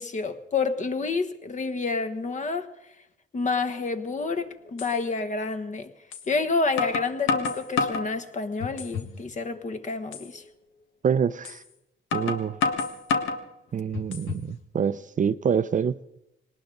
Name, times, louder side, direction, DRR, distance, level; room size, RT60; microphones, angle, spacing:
voice 1, 0.0-2.7 3.3-5.9 6.3-10.4, left 4 dB, 40° left, 1.3 m, -29 dB
sound 1, 4.2-4.3 4.8-4.9 6.1-6.3 6.8-8.1 8.6-9.1 9.5-9.6 10.1-10.3 11.4-11.6 12.1-13.4 13.9-14.5, left 4 dB, 80° left, 1.6 m, -28 dB
voice 2, 11.0-11.6 12.1-12.6 13.7-15.9, right 7 dB, 40° right, 0.6 m, -26 dB
19.5 x 19.0 x 3.9 m
cardioid pair, 90°, 20 cm